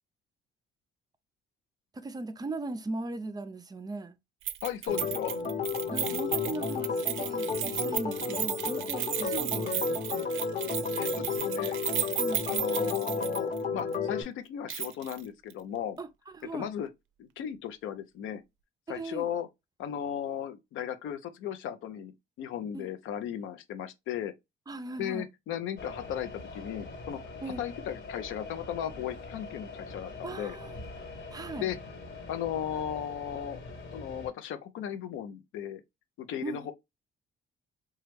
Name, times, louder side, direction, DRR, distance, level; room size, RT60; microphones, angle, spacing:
voice 1, 1.9-4.2 5.9-10.3 12.2-12.4 16.0-16.7 18.9-19.3 22.7-22.9 24.7-25.3 27.4-27.7 30.2-30.8 31.3-31.7 36.4-36.7, right 3 dB, 20° right, 0.4 m, -38 dB
Keys jangling, 4.5-13.6 13.9-14.0 14.7-15.2 15.5-15.6, right 12 dB, 80° right, 0.4 m, -34 dB
voice 2, 4.6-5.3 11.0-11.8 12.5-16.0 16.5-16.9 17.2-18.4 18.9-19.5 19.8-24.3 25.0-27.2 27.6-30.6 31.6-31.8 32.3-33.6 33.9-35.8 36.2-36.7, left 9 dB, 85° left, 0.5 m, -36 dB
Organ, 4.9-14.2, left 5 dB, 40° left, 0.9 m, -32 dB
sound 1, 25.8-34.3, left 3 dB, 65° left, 1.4 m, -43 dB
3.0 x 2.3 x 3.3 m
cardioid pair, 90°, 20 cm